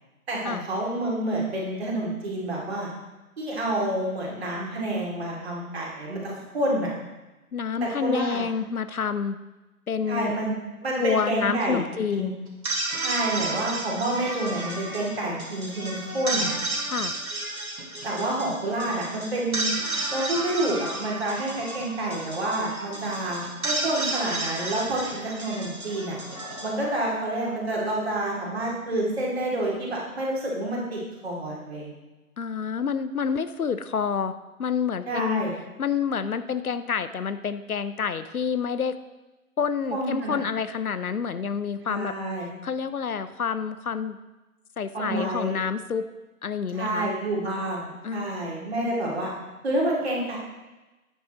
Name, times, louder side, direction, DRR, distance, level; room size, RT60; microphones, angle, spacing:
voice 1, 0.3-2.9 3.4-6.9 7.8-8.4 10.1-10.5 10.8-11.8 12.1-12.3 13.0-16.5 18.0-19.7 20.1-26.2 26.6-31.9 35.1-35.5 39.9-40.4 41.8-42.5 44.9-45.5 46.7-49.3 49.6-50.4, right 1 dB, 45° right, -3 dB, 2.6 m, -28 dB
voice 2, 7.5-9.4 9.9-10.4 11.0-12.4 16.9-17.1 32.4-35.4 35.8-39.0 39.6-42.1 42.6-44.2 44.8-46.1 46.4-47.1 48.0-48.3, left 6 dB, 75° left, 13 dB, 0.6 m, -28 dB
sound 1, 12.5-27.7, right 2 dB, 70° right, 2.4 m, -32 dB
9.2 x 8.4 x 3.0 m, 1.1 s
figure-of-eight pair, 155°, 44 cm